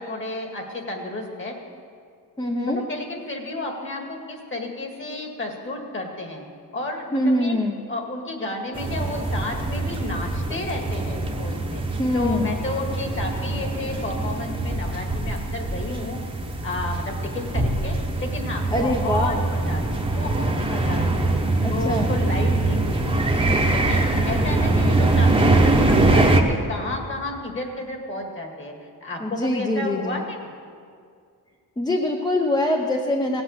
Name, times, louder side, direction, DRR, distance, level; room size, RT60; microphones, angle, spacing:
voice 1, 0.0-1.6 2.7-6.4 6.7-7.6 7.9-11.8 12.1-16.2 16.6-21.3 21.7-28.7 29.0-30.5, left 2 dB, 35° left, 2 dB, 1.9 m, -32 dB
voice 2, 2.4-2.8 7.1-7.8 12.0-12.5 18.7-19.4 21.6-22.1 29.2-30.2 31.8-33.4, left 1 dB, 10° left, 1 dB, 0.8 m, -24 dB
sound 1, 8.7-26.4, right 2 dB, 15° right, 1.1 m, -23 dB
17.0 x 8.0 x 7.9 m, 2.2 s
wide cardioid pair, 160°, 37 cm